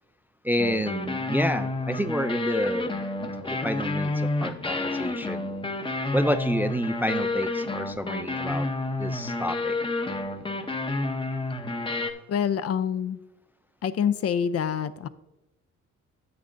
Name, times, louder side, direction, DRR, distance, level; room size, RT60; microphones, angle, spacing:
voice 1, 0.4-3.0 3.4-5.5 6.1-8.7 9.0-9.8, equal, 5° right, 9 dB, 0.3 m, -29 dB
sound 1, 0.6-12.1, left 2 dB, 15° left, 0.8 m, -29 dB
voice 2, 12.3-13.2 13.8-15.1, left 8 dB, 55° left, 14 dB, 0.6 m, -26 dB
10.0 x 8.1 x 2.6 m, 0.97 s
cardioid pair, 90°, 30 cm